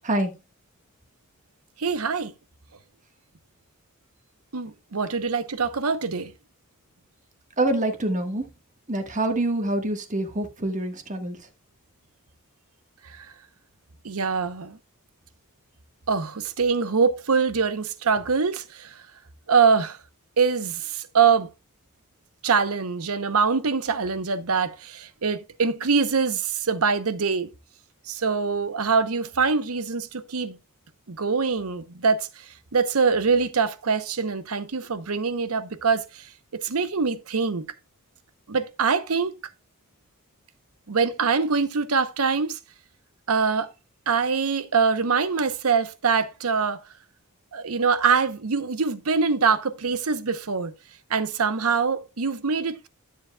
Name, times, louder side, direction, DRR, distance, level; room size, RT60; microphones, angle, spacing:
voice 1, 0.0-0.4 7.6-8.4 8.9-11.5, right 1 dB, 35° right, 1.4 m, -26 dB
voice 2, 1.8-2.3 4.5-6.3 13.0-13.3 14.0-14.8 16.1-18.9 19.5-20.0 20.4-21.5 22.4-27.5 28.1-30.6 31.1-32.4 32.7-37.7 38.5-39.3 40.9-42.6 43.3-43.7 44.1-46.8 47.5-50.7 51.1-52.9, right 5 dB, 70° right, 0.8 m, -24 dB
12.0 x 7.4 x 2.3 m
head